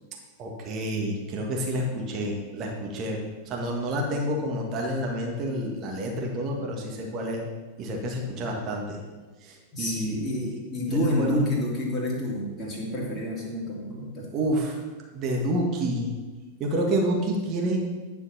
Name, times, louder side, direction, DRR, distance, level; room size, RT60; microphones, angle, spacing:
voice 1, 0.4-7.4 7.8-9.0 9.4-10.2 10.9-11.6 14.3-14.8 15.1-16.1 16.6-17.8, right 1 dB, 35° right, 0 dB, 1.7 m, -29 dB
voice 2, 9.7-14.2, equal, 20° left, -4 dB, 2.4 m, -29 dB
10.0 x 4.5 x 5.6 m, 1.3 s
figure-of-eight pair, 90°, 0 cm